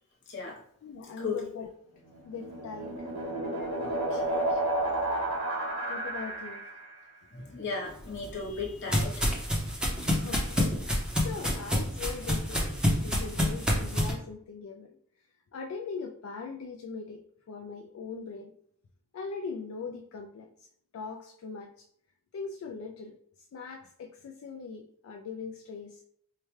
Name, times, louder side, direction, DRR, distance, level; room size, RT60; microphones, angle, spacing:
voice 1, 0.8-1.7 2.2-3.1 5.9-6.7 10.1-15.0 15.5-18.5 19.1-20.7 20.9-21.9 22.3-23.2 23.5-26.0, left 5 dB, 70° left, 3 dB, 0.3 m, -41 dB
sound 1, 2.1-6.9, right 1 dB, 85° right, 1.2 m, -31 dB
voice 2, 3.8-4.4 7.3-9.3, left 4 dB, 55° left, -2 dB, 1.1 m, -36 dB
sound 2, 8.0-14.1, left 1 dB, 5° right, 0.6 m, -28 dB
4.6 x 2.2 x 3.1 m, 0.69 s
head